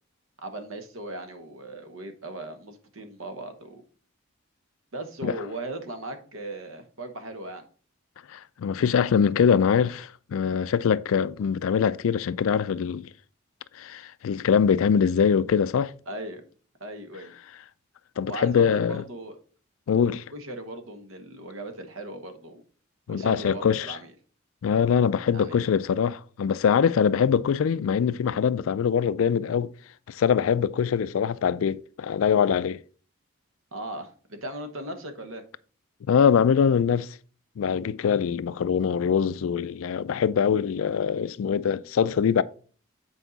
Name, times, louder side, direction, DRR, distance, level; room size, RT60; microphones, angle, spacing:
voice 1, 0.4-3.8 4.9-7.6 16.1-16.4 16.8-17.4 18.3-19.4 20.3-22.6 23.1-24.1 25.3-25.6 33.7-35.4, right 1 dB, 75° right, 1.1 m, -38 dB
voice 2, 8.3-13.1 13.8-15.9 18.2-19.0 19.9-20.2 23.1-24.0 24.6-29.7 30.1-32.8 36.1-37.1 37.6-42.4, left 7 dB, 75° left, 0.3 m, -23 dB
8.1 x 4.6 x 4.0 m
head